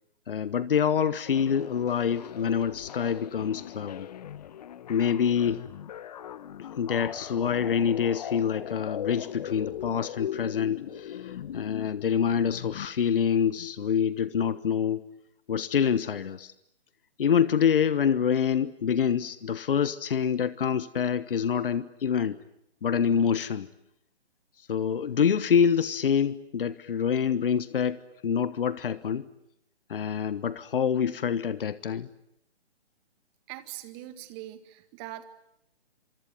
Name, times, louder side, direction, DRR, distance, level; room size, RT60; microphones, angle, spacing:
voice 1, 0.3-4.1 4.9-5.7 6.8-15.1 15.5-16.5 17.2-22.4 22.8-23.7 24.7-28.0 28.2-29.2 29.9-32.1, left 7 dB, 55° left, 16 dB, 1.3 m, -26 dB
sound 1, 1.3-12.9, left 10 dB, 35° left, 1.1 m, -40 dB
voice 2, 33.5-35.2, right 15 dB, 25° right, 12 dB, 1.9 m, -42 dB
26.5 x 24.5 x 9.2 m, 0.77 s
figure-of-eight pair, 135°, 33 cm